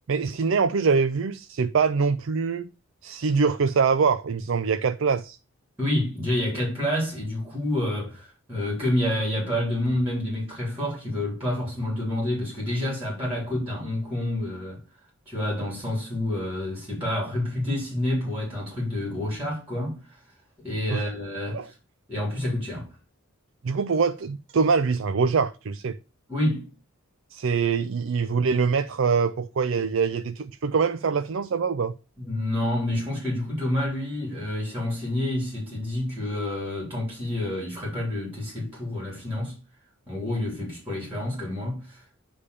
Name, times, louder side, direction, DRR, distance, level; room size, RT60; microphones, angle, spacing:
voice 1, 0.1-2.7 3.0-5.4 20.9-21.0 21.5-21.7 23.6-26.0 27.3-31.9, right 5 dB, 60° right, 0.4 m, -24 dB
voice 2, 5.8-14.8 15.2-20.0 20.6-21.7 22.1-22.9 26.3-26.7 32.2-39.6 40.1-42.2, left 1 dB, 10° right, 3.6 m, -28 dB
9.9 x 3.5 x 6.6 m
head